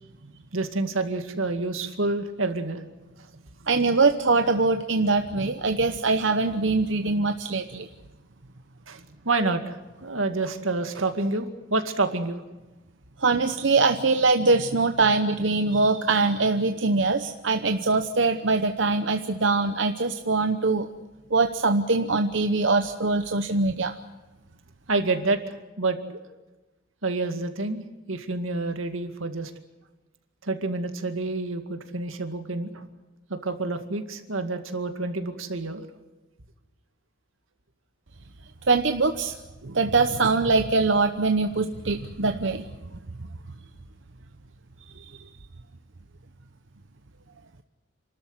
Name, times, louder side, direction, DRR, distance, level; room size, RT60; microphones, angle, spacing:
voice 1, 0.5-2.8 8.9-12.4 24.9-26.2 27.0-27.8 28.1-29.5 30.4-32.8 33.3-35.8, right 3 dB, 85° right, 7 dB, 2.2 m, -28 dB
voice 2, 3.7-7.9 13.2-20.9 21.3-24.0 38.7-39.4 39.6-42.7 45.0-45.2, right 3 dB, 65° right, 7 dB, 0.9 m, -23 dB
28.5 x 13.0 x 9.8 m, 1.1 s
head